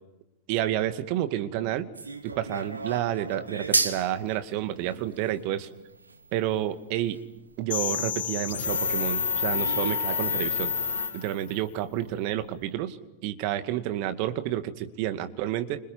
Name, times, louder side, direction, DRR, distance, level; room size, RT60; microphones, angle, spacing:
voice 1, 0.5-1.9 2.2-5.7 6.3-7.2 7.6-10.7 11.1-13.0 13.2-15.8, right 12 dB, 45° right, 9 dB, 2.1 m, -30 dB
sound 1, 1.9-7.8 8.3-8.4 8.8-8.9 9.6-10.7 11.0-11.1 11.4-11.5 12.1-12.2 12.4-12.5, right 3 dB, 80° right, 1.8 m, -34 dB
sound 2, 7.7-11.6, left 6 dB, 65° left, 4.2 m, -28 dB
29.0 x 26.5 x 5.6 m, 0.93 s
figure-of-eight pair, 90°, 0 cm